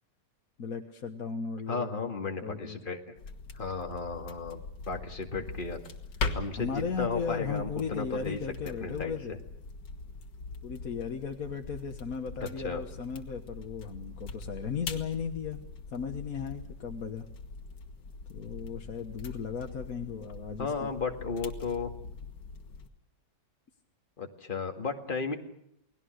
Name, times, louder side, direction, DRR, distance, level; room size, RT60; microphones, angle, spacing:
voice 1, 0.6-2.8 6.6-9.4 10.6-15.6 15.9-17.3 18.3-20.9, left 6 dB, 55° left, 3 dB, 1.7 m, -36 dB
voice 2, 1.7-3.1 3.5-4.6 4.9-5.8 6.3-8.4 8.6-9.4 12.4-12.8 20.6-21.9 24.2-25.3, left 4 dB, 30° left, 4 dB, 2.1 m, -34 dB
sound 1, 3.2-22.9, left 3 dB, 80° left, 2.3 m, -42 dB
29.5 x 19.0 x 6.5 m, 0.75 s
omnidirectional pair, 1.9 m